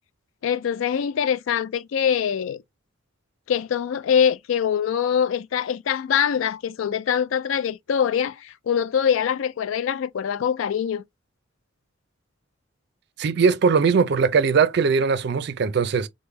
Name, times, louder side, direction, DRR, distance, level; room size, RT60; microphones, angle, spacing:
voice 1, 0.4-2.6 3.5-11.0, left 8 dB, 80° left, 0.3 m, -23 dB
voice 2, 13.2-16.1, right 5 dB, 55° right, 0.4 m, -20 dB
3.3 x 2.1 x 3.1 m
head